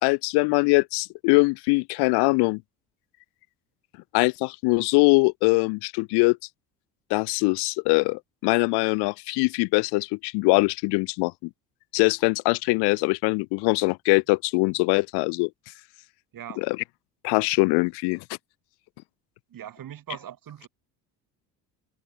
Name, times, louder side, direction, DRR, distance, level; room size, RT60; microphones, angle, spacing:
voice 1, 0.0-2.6 4.1-6.4 7.1-11.5 11.9-15.5 16.6-16.8 17.2-18.2, left 28 dB, 50° left, 0.8 m, -22 dB
voice 2, 16.3-16.7 19.5-20.7, right 10 dB, 40° right, 3.6 m, -40 dB
figure-of-eight pair, 55°, 49 cm